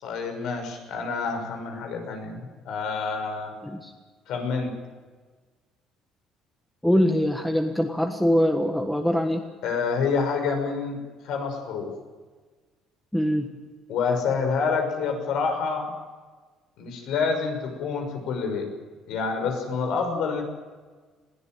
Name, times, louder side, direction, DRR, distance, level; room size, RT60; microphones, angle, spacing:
voice 1, 0.0-3.5 4.3-4.8 9.6-11.0 11.2-11.9 13.9-15.9 16.8-18.7 19.1-20.4, left 5 dB, 70° left, 5 dB, 6.0 m, -27 dB
voice 2, 6.8-9.4 13.1-13.5, equal, ahead, 4 dB, 1.4 m, -23 dB
21.0 x 17.0 x 9.2 m, 1.4 s
cardioid pair, 145°, 0 cm